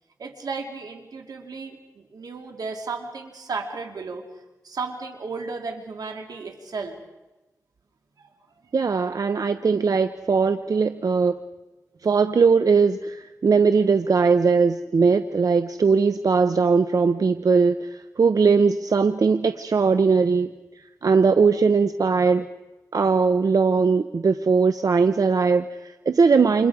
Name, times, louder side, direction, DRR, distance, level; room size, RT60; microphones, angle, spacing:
voice 1, 0.2-4.2 4.6-7.0 8.2-8.3, right 4 dB, 90° right, 3 dB, 2.7 m, -34 dB
voice 2, 8.7-11.4 12.0-20.5 21.0-22.5 22.9-26.7, right 5 dB, 70° right, 10 dB, 0.8 m, -20 dB
29.5 x 27.5 x 4.9 m, 1.1 s
cardioid pair, 55°, 6 cm